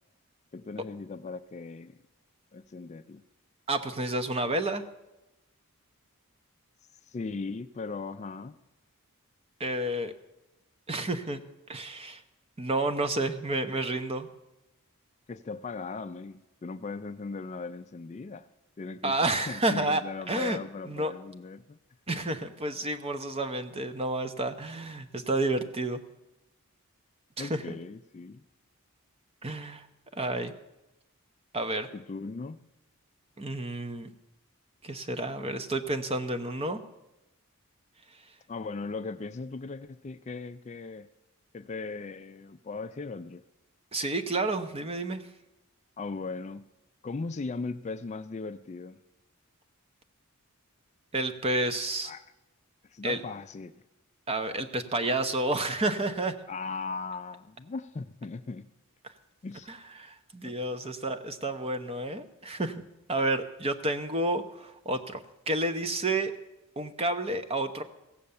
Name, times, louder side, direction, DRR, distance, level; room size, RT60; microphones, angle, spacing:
voice 1, 0.5-2.0 2.5-3.2 7.1-8.6 15.3-18.5 18.8-21.8 22.1-22.2 27.4-28.4 31.9-32.6 38.5-41.1 41.5-43.4 46.0-46.6 47.0-49.0 52.0-52.2 52.9-53.7 56.5-58.7 59.4-59.7 60.4-60.5 60.8-60.9, left 4 dB, 30° left, 10 dB, 0.3 m, -38 dB
voice 2, 3.7-4.8 9.6-10.1 10.9-11.4 11.7-12.2 12.6-14.3 19.0-20.0 20.3-20.6 20.8-21.1 22.1-26.0 27.4-27.6 29.4-29.9 30.1-30.5 31.5-31.9 33.4-34.1 34.8-36.8 43.9-45.2 51.1-52.1 53.0-53.2 54.3-56.4 59.7-62.8 63.1-66.3 66.8-67.8, right 2 dB, 25° right, 9 dB, 0.8 m, -30 dB
16.0 x 7.8 x 7.0 m, 0.97 s
head